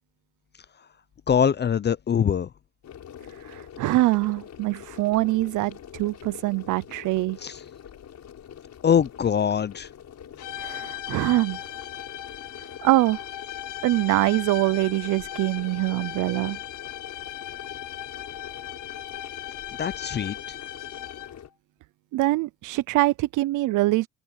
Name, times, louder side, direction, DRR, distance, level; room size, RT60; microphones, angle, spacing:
voice 1, 1.3-2.5 7.4-7.6 8.8-9.9 19.8-20.4, left 8 dB, 35° left, 0.6 m, -23 dB
sound 1, 2.8-21.5, left 9 dB, 65° left, 7.1 m, -44 dB
voice 2, 3.4-7.4 10.6-11.6 12.8-13.2 13.8-16.6 22.1-24.1, right 18 dB, 90° right, 0.6 m, -24 dB
sound 2, 10.4-21.5, left 13 dB, 85° left, 2.1 m, -38 dB
cardioid pair, 90°, 30 cm